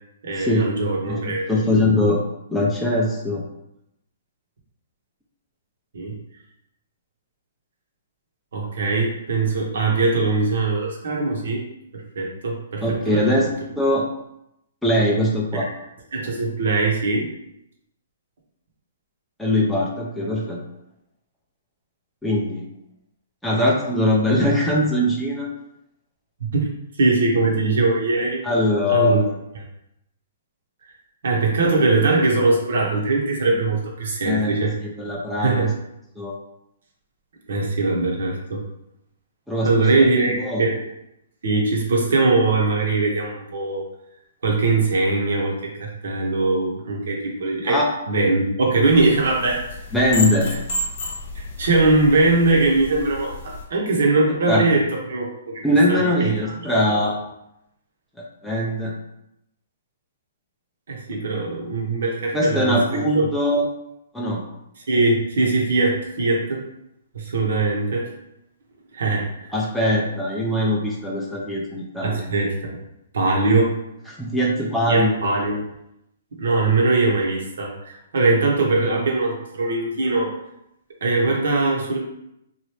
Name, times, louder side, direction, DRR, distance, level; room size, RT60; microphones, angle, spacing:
voice 1, 0.2-1.6 5.9-6.1 8.5-11.6 11.9-13.5 15.5-15.6 16.1-17.3 26.4-26.7 27.0-28.4 28.9-29.2 29.5-29.6 31.2-34.7 35.4-35.7 37.5-38.6 39.6-40.8 41.4-43.8 44.4-47.8 48.1-49.6 50.5-50.6 51.3-55.6 55.9-56.5 57.0-57.1 60.9-62.7 63.1-63.3 64.9-66.6 67.1-68.1 68.9-69.5 72.0-72.8 73.1-73.7 74.9-75.6 76.4-80.3 81.0-82.0, right 3 dB, 70° right, -1 dB, 1.1 m, -21 dB
voice 2, 1.0-2.2 2.5-3.4 12.8-13.5 13.8-14.0 14.8-15.7 19.4-20.6 22.2-22.6 23.4-25.5 28.4-29.2 34.2-34.6 34.8-35.7 36.2-36.3 39.5-39.9 40.4-40.6 47.7-47.9 49.9-50.5 54.5-54.6 55.6-57.1 58.4-58.9 62.3-63.7 64.1-64.4 69.5-72.3 74.1-75.2, left 1 dB, ahead, -5 dB, 0.6 m, -21 dB
sound 1, 48.8-53.6, left 2 dB, 50° left, 1.2 m, -31 dB
3.0 x 2.6 x 3.2 m, 0.83 s
hypercardioid pair, 140°, 0 cm